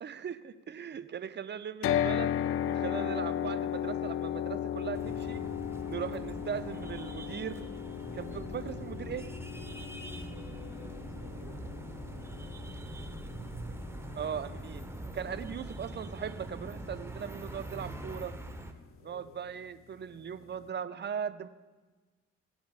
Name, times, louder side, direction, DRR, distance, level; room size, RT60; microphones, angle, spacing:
voice 1, 0.0-2.3 2.6-5.4 5.9-7.7 8.1-9.3 14.1-14.9 15.1-18.4 19.0-21.5, right 8 dB, 30° right, 13 dB, 0.6 m, -39 dB
sound 1, 1.8-16.0, left 10 dB, 40° left, 0.4 m, -36 dB
sound 2, 4.9-18.7, right 1 dB, 10° right, 1.0 m, -43 dB
voice 2, 10.2-12.2 19.0-19.5, left 4 dB, 65° left, 0 dB, 2.7 m, -55 dB
16.5 x 10.0 x 2.5 m, 1.3 s
figure-of-eight pair, 40°, 34 cm